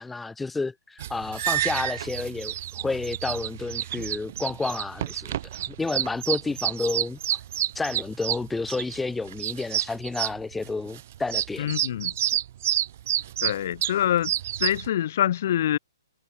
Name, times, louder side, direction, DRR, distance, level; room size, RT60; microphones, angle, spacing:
voice 1, 0.0-5.4 5.7-7.2 7.7-11.7, left 3 dB, 5° left, 2.7 m, -30 dB
sound 1, 1.0-14.9, right 12 dB, 30° right, 1.6 m, -29 dB
voice 2, 11.6-12.1 13.4-14.3 14.6-15.8, left 11 dB, 35° left, 6.6 m, -25 dB
hypercardioid pair, 180°, 2 cm